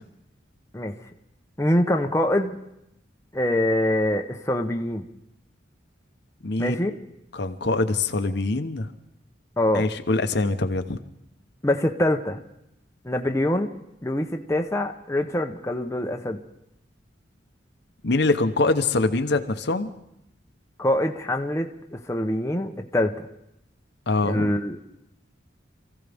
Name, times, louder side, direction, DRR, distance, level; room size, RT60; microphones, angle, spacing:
voice 1, 1.6-2.6 3.3-5.0 6.6-7.0 9.6-9.9 11.6-12.4 13.0-13.7 14.0-16.4 20.8-23.3 24.2-24.8, left 1 dB, 15° left, 4 dB, 0.8 m, -24 dB
voice 2, 6.4-6.8 7.3-8.9 9.7-11.0 18.0-19.9 24.1-24.5, left 3 dB, 60° left, 8 dB, 0.9 m, -24 dB
27.5 x 15.0 x 3.5 m, 0.82 s
head